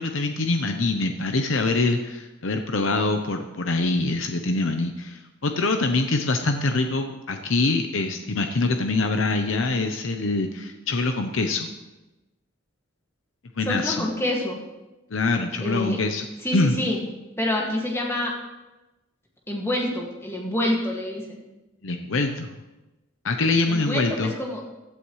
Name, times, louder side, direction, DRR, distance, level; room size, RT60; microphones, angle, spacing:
voice 1, 0.0-11.7 13.6-14.1 15.1-16.3 16.5-16.8 21.8-22.5 23.2-24.3, left 3 dB, 75° left, 6 dB, 0.8 m, -24 dB
voice 2, 13.7-14.6 15.6-16.0 16.4-17.0 17.4-18.3 19.5-21.4 23.7-24.6, left 1 dB, 15° left, -2 dB, 2.0 m, -27 dB
16.0 x 11.5 x 3.2 m, 1.1 s
head